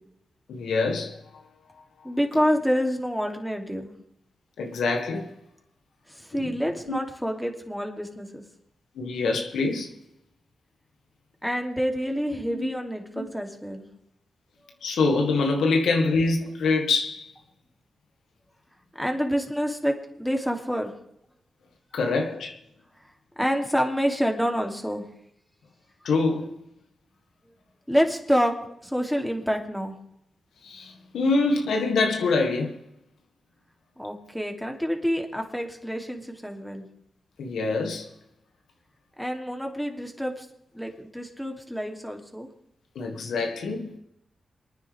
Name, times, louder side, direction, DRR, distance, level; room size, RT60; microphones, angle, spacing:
voice 1, 0.5-1.2 4.6-5.3 6.3-6.4 9.0-9.9 12.5-12.7 14.8-17.3 21.9-22.6 26.0-26.5 30.6-32.8 37.4-38.1 43.0-43.9, left 3 dB, 90° left, 1.9 m, -25 dB
voice 2, 2.0-3.9 6.1-8.4 11.4-13.9 19.0-20.9 23.4-25.0 27.9-28.5 28.8-30.0 34.0-36.9 39.2-40.5 40.7-42.5, equal, ahead, 2.8 m, -27 dB
27.5 x 9.8 x 3.5 m
cardioid pair, 70°, 0 cm